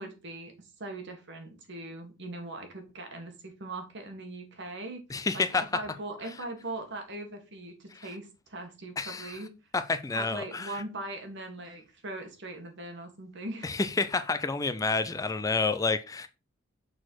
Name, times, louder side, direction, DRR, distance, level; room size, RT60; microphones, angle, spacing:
voice 1, 0.0-9.5 10.1-13.8, right 2 dB, 60° right, 1.8 m, -40 dB
voice 2, 5.1-5.6 9.0-9.3 9.7-10.7 13.6-16.3, left 3 dB, 15° left, 0.4 m, -29 dB
6.4 x 4.2 x 4.6 m
head